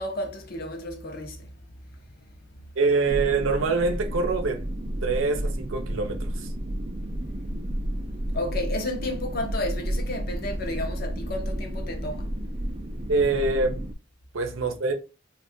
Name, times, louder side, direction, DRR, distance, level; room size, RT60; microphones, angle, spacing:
voice 1, 0.0-1.4 8.3-12.3, left 1 dB, 50° left, 0.7 m, -32 dB
voice 2, 2.8-4.7 5.0-6.5 13.1-13.9 14.3-14.9, right 3 dB, 90° right, 0.7 m, -25 dB
sound 1, 3.1-14.0, right 1 dB, 30° right, 0.4 m, -31 dB
2.6 x 2.3 x 3.4 m
head